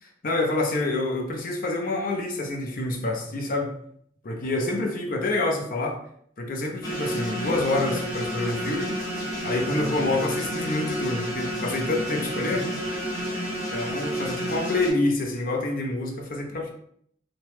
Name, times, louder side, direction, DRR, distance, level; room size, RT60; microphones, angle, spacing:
voice 1, 0.0-3.8 4.2-6.0 6.4-9.0 9.4-12.7 13.7-16.7, left 2 dB, 50° left, 2 dB, 0.5 m, -27 dB
sound 1, 6.8-14.9, equal, 20° left, 0.9 m, -30 dB
2.9 x 2.2 x 3.1 m, 0.67 s
head